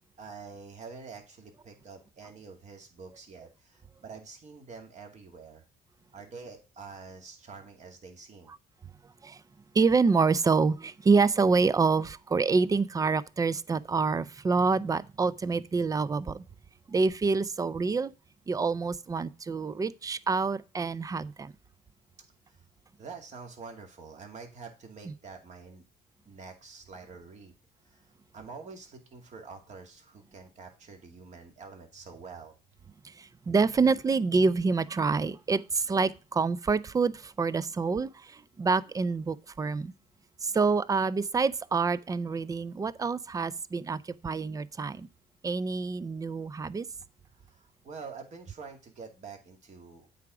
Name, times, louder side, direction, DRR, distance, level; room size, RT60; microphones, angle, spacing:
voice 1, 0.2-5.6 6.1-8.5 22.5-22.6 23.0-25.8 26.2-27.5 27.8-32.5 47.3-50.1, right 5 dB, 45° right, 2.4 m, -46 dB
voice 2, 9.7-16.4 16.9-18.1 18.5-21.5 25.1-25.2 33.0-39.9 40.4-45.1 45.4-46.9, right 4 dB, 20° right, 0.4 m, -27 dB
8.4 x 4.8 x 4.9 m
cardioid pair, 110°, 17 cm